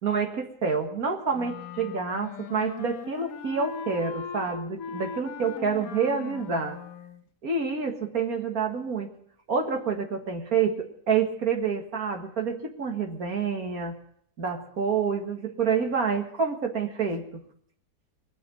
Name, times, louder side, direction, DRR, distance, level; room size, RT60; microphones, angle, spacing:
voice 1, 0.0-6.8 7.4-9.1 9.5-14.0 14.4-17.4, right 5 dB, 60° right, 4 dB, 2.2 m, -28 dB
Wind instrument woodwind instrument, 1.3-7.2, left 7 dB, 65° left, 1.2 m, -39 dB
21.0 x 7.1 x 9.7 m, 0.67 s
omnidirectional pair, 1.7 m